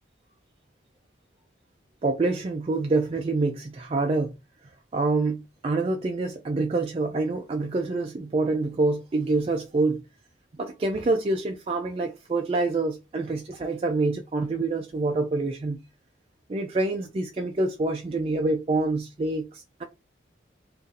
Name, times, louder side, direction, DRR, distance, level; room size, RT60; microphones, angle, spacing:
voice 1, 2.0-4.3 4.9-10.0 10.6-15.8 16.5-19.8, right 3 dB, 30° right, 0.3 m, -26 dB
2.6 x 2.5 x 3.8 m
head